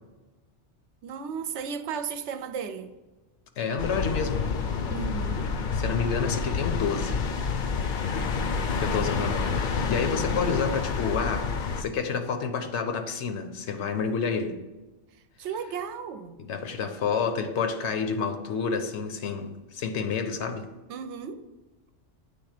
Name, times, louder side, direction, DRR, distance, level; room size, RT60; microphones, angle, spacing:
voice 1, 1.0-2.9 4.9-5.5 15.4-16.3 20.9-21.4, right 6 dB, 75° right, 9 dB, 0.9 m, -34 dB
voice 2, 3.6-4.5 5.7-7.2 8.7-9.6 9.9-14.6 16.5-20.7, left 5 dB, 75° left, 7 dB, 1.0 m, -29 dB
sound 1, 3.8-11.8, left 5 dB, 55° left, 0.6 m, -28 dB
8.0 x 3.4 x 4.9 m, 1.2 s
omnidirectional pair, 1.2 m